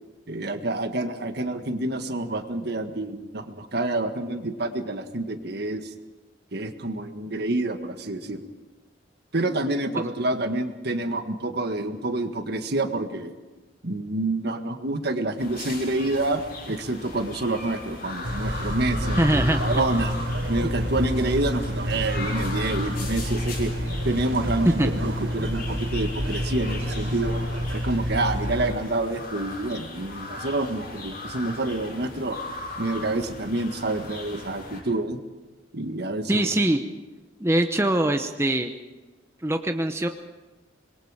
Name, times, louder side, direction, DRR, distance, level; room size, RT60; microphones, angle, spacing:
voice 1, 0.3-5.9 6.5-8.5 9.3-13.4 13.8-20.1 20.5-23.7 24.0-27.4 27.7-32.4 32.8-35.2 35.7-36.5, right 2 dB, 60° right, 7 dB, 1.7 m, -28 dB
sound 1, 15.4-34.8, left 2 dB, 55° left, 7.4 m, -38 dB
sound 2, 18.2-28.7, equal, 80° right, 4.5 m, -28 dB
voice 2, 19.2-19.6 20.6-20.7 24.7-24.9 36.3-36.8 37.4-38.7 39.4-40.1, right 1 dB, 15° right, 6 dB, 0.8 m, -22 dB
26.0 x 21.5 x 5.0 m, 1.2 s
head